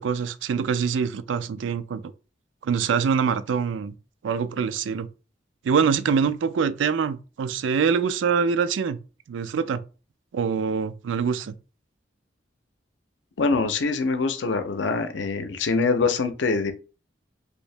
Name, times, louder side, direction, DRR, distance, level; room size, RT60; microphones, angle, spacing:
voice 1, 0.0-2.0 2.6-3.9 4.2-5.1 5.6-9.0 9.3-9.8 10.3-11.5, right 6 dB, 85° right, 0.4 m, -24 dB
voice 2, 13.4-16.7, left 4 dB, 75° left, 0.6 m, -24 dB
3.1 x 2.7 x 3.2 m
head